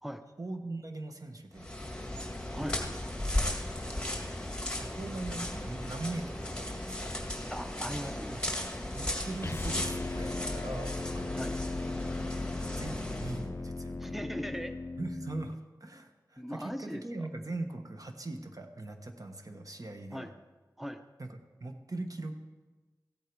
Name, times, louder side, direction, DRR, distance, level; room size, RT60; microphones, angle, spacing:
voice 1, 0.4-1.7 2.5-2.6 4.7-7.1 8.3-8.6 8.9-11.5 12.7-14.2 15.0-20.3 21.2-22.4, right 2 dB, 55° right, 5 dB, 1.3 m, -40 dB
sound 1, 1.5-13.5, left 1 dB, 15° left, 1.9 m, -36 dB
voice 2, 7.5-8.4 11.3-11.5 14.0-14.7 16.4-17.0 20.1-20.3 20.8-21.0, equal, 5° right, 8 dB, 0.7 m, -39 dB
sound 2, 9.4-15.6, left 3 dB, 35° left, 0.4 m, -37 dB
15.0 x 8.4 x 4.7 m, 1.3 s
wide cardioid pair, 45°, 7 cm